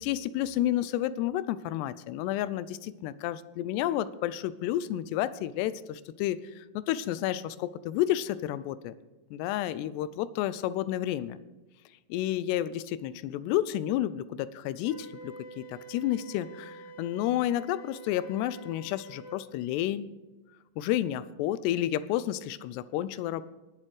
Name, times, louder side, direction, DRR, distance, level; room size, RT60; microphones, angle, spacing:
voice 1, 0.0-8.9 9.3-11.4 12.1-20.1 20.8-23.4, left 13 dB, 85° left, 16 dB, 2.7 m, -31 dB
Wind instrument woodwind instrument, 14.8-19.4, right 3 dB, 55° left, 4.3 m, -47 dB
19.5 x 7.5 x 4.9 m, 1.2 s
omnidirectional pair, 4.8 m